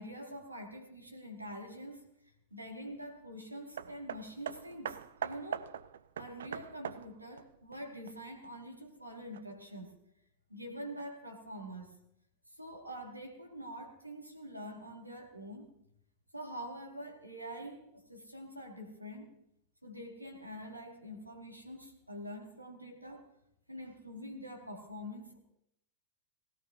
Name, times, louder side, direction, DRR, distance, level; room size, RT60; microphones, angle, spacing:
voice 1, 0.0-2.1 2.5-5.7 6.2-9.9 10.5-11.9 12.5-15.7 16.3-19.3 19.8-23.3 23.7-25.4, equal, 85° right, 2 dB, 2.2 m, -45 dB
Hammer, 3.8-8.5 9.3-9.4, right 8 dB, 65° right, 0.5 m, -42 dB
19.0 x 17.5 x 2.8 m, 0.76 s
figure-of-eight pair, 90°, 0 cm